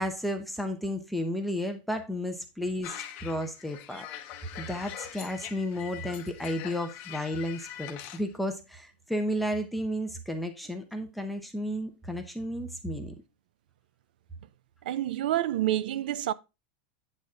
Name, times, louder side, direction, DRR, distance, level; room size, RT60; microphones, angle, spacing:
voice 1, 0.0-13.1, equal, ahead, 0.7 m, -33 dB
sound 1, 2.8-8.2, left 11 dB, 35° left, 0.9 m, -43 dB
voice 2, 14.8-16.3, right 13 dB, 85° right, 0.5 m, -28 dB
9.0 x 4.1 x 4.7 m
supercardioid pair, 170°, 5 cm